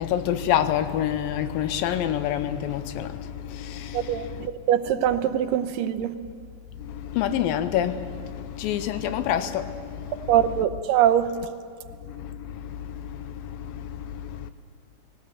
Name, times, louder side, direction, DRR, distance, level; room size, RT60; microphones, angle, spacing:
voice 1, 0.0-4.5 6.8-10.4 12.1-14.5, left 10 dB, 85° left, 2.5 m, -28 dB
voice 2, 3.9-6.1 10.3-11.3, right 10 dB, 75° right, 2.4 m, -23 dB
20.0 x 17.5 x 8.3 m
omnidirectional pair, 4.1 m